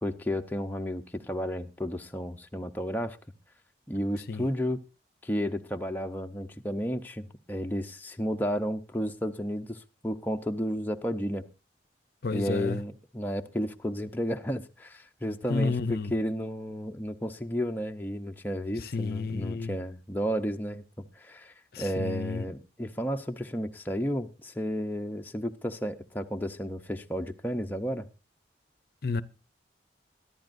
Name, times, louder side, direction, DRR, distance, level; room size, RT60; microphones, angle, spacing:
voice 1, 0.0-3.2 3.9-4.8 5.2-11.4 12.3-20.8 21.2-28.1, equal, 10° left, 0.6 m, -32 dB
voice 2, 12.2-12.8 15.5-16.1 18.8-19.8 21.7-22.5 29.0-29.2, left 4 dB, 55° left, 0.6 m, -31 dB
22.5 x 11.5 x 2.6 m
head